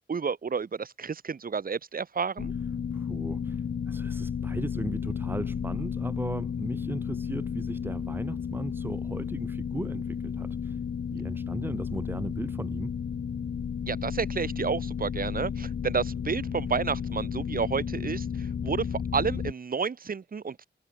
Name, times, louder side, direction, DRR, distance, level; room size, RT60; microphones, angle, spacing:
voice 1, 0.0-2.5 13.8-20.6, right 5 dB, 45° right, 3.3 m, -31 dB
sound 1, 2.4-19.5, left 7 dB, 60° left, 2.2 m, -33 dB
voice 2, 2.9-10.8 11.1-12.9, right 1 dB, 10° right, 1.5 m, -37 dB
wide cardioid pair, 155°, 20 cm